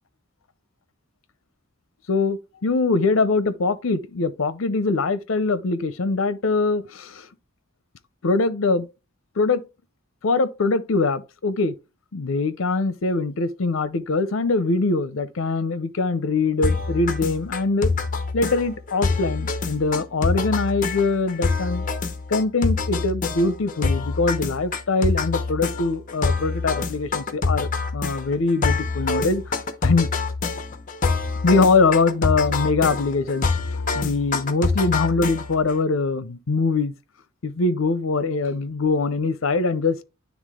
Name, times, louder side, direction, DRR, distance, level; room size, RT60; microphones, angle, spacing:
voice 1, 2.1-7.3 8.2-8.9 9.4-9.6 10.2-11.7 12.1-17.9 18.3-21.8 22.3-29.4 29.8-30.1 31.4-36.9 37.4-40.0, left 3 dB, 75° left, 0.6 m, -23 dB
sound 1, 16.6-35.7, left 4 dB, 40° left, 0.8 m, -26 dB
9.5 x 3.5 x 3.6 m
head